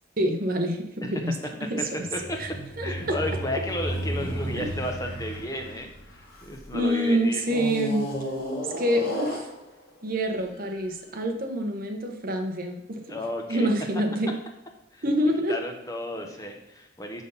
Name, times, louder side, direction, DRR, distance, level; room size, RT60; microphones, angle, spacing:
voice 1, 0.2-1.3 1.7-1.9 2.4-2.5 2.8-3.2 4.6-4.7 6.7-8.1 8.8-9.5 10.0-13.0 13.5-14.4 15.0-15.5, equal, 45° right, 3 dB, 1.0 m, -26 dB
sound 1, 2.0-6.7 7.4-10.0 10.7-10.8, equal, 50° left, 1.5 m, -33 dB
voice 2, 2.8-7.4 13.1-13.7 14.9-15.0 15.5-17.2, left 1 dB, 15° left, 2 dB, 1.0 m, -33 dB
6.1 x 5.5 x 5.6 m, 0.79 s
head